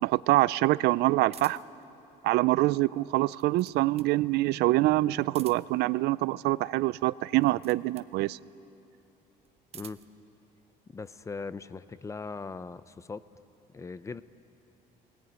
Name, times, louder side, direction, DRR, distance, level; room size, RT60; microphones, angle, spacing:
voice 1, 0.0-1.6 2.2-8.4, right 18 dB, 80° right, 19 dB, 0.4 m, -25 dB
sound 1, 1.3-1.8 3.1-4.2 5.2-5.9 7.3-8.2 9.4-10.2, right 9 dB, 40° right, 0.7 m, -49 dB
voice 2, 10.9-13.2 13.7-14.2, left 4 dB, 20° left, 15 dB, 0.5 m, -39 dB
19.5 x 18.5 x 9.5 m, 2.9 s
cardioid pair, 145°, 17 cm